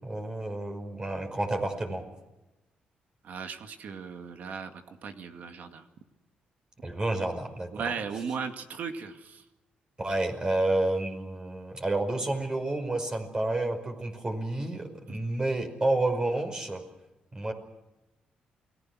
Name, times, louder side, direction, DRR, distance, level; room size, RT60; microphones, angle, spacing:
voice 1, 0.0-2.0 6.8-7.9 10.0-16.8 17.3-17.5, right 2 dB, 25° right, 5 dB, 5.4 m, -30 dB
voice 2, 3.2-5.8 7.7-9.4 15.1-15.2, right 6 dB, 65° right, 6 dB, 2.2 m, -37 dB
29.0 x 20.0 x 6.3 m, 0.99 s
cardioid pair, 90°, 3 cm